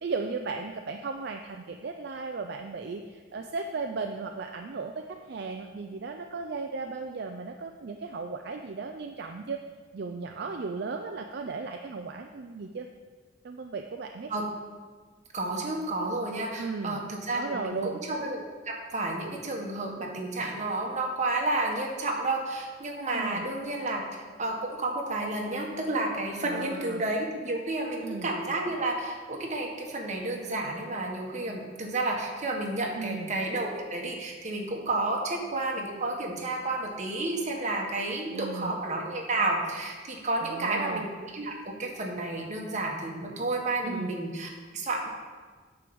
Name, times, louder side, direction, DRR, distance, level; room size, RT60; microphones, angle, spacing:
voice 1, 0.0-9.6 9.9-12.9 13.4-14.3 16.6-17.0 17.3-18.0 23.1-23.4 26.5-27.0 28.0-28.3 33.0-33.3 38.3-38.8 40.4-41.1 43.8-44.1, right 4 dB, 55° right, 4 dB, 0.5 m, -36 dB
voice 2, 15.3-18.4 18.9-45.1, right 2 dB, 40° right, 0 dB, 1.4 m, -31 dB
9.5 x 4.6 x 6.9 m, 1.5 s
head